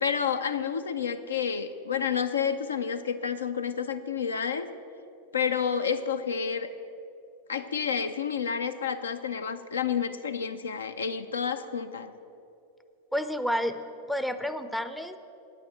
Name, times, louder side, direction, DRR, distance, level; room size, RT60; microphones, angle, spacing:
voice 1, 0.0-4.7 5.3-6.7 7.5-12.1, left 7 dB, 70° left, 10 dB, 0.5 m, -30 dB
voice 2, 13.1-13.8 14.1-15.2, equal, ahead, 10 dB, 0.5 m, -30 dB
9.1 x 8.4 x 7.8 m, 2.7 s
figure-of-eight pair, 90°, 0 cm